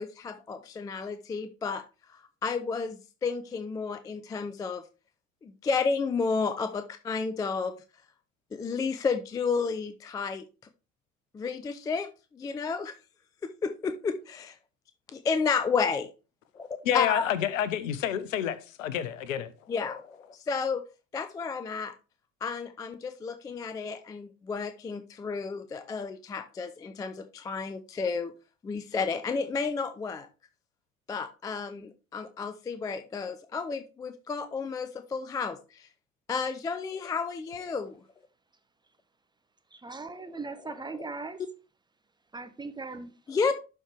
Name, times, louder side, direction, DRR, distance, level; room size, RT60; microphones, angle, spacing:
voice 1, 0.0-1.8 2.1-4.8 5.4-7.7 8.5-10.5 11.3-13.0 13.4-14.6 15.1-16.1 16.5-17.3 19.7-20.8 21.1-21.9 22.4-28.3 28.6-30.3 31.1-35.9 36.3-38.0 41.0-41.1 43.3-43.5, left 5 dB, 10° left, 0.3 m, -32 dB
voice 2, 16.8-19.5, left 10 dB, 70° left, 0.9 m, -29 dB
voice 3, 39.7-41.4 42.3-43.1, right 3 dB, 10° right, 0.7 m, -39 dB
11.5 x 4.4 x 3.4 m
figure-of-eight pair, 70°, 41 cm